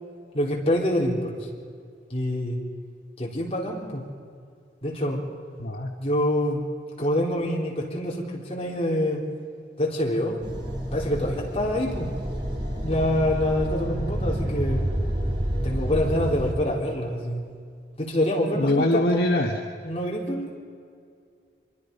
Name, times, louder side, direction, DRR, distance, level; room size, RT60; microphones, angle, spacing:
voice 1, 0.3-1.5 2.1-2.6 3.2-4.0 4.8-5.2 6.0-6.6 7.0-9.2 9.8-10.4 10.9-12.1 12.8-14.8 15.6-17.4 18.0-19.3 19.8-20.5, left 1 dB, 35° left, -3 dB, 3.9 m, -26 dB
sound 1, 10.4-16.5, equal, 30° right, 2.6 m, -29 dB
voice 2, 18.6-19.6, left 1 dB, 55° left, 2 dB, 1.3 m, -23 dB
25.0 x 23.5 x 5.4 m, 2.2 s
head